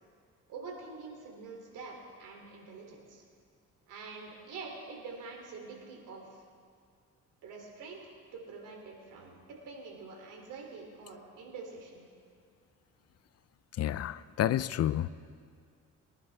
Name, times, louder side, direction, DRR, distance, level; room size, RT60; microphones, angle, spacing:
voice 1, 0.5-3.2 3.9-6.4 7.4-8.0 8.3-9.4 9.7-12.0, right 4 dB, 90° right, 0 dB, 3.0 m, -46 dB
voice 2, 13.8-15.1, left 12 dB, 55° left, 17 dB, 0.5 m, -29 dB
23.0 x 11.0 x 3.4 m, 2.2 s
cardioid pair, 90°, 30 cm